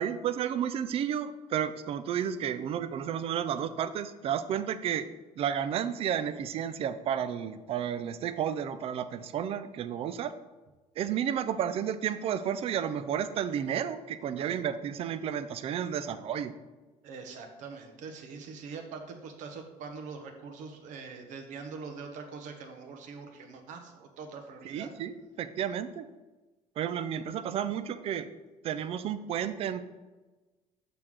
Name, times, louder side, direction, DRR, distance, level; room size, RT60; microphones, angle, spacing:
voice 1, 0.0-5.1 5.4-10.3 11.0-16.5 24.6-26.1 26.8-28.3 28.6-29.8, right 9 dB, 45° right, 12 dB, 0.5 m, -32 dB
voice 2, 17.0-24.9, right 5 dB, 65° right, 4 dB, 1.1 m, -43 dB
6.7 x 3.8 x 6.2 m, 1.2 s
cardioid pair, 150°, 14 cm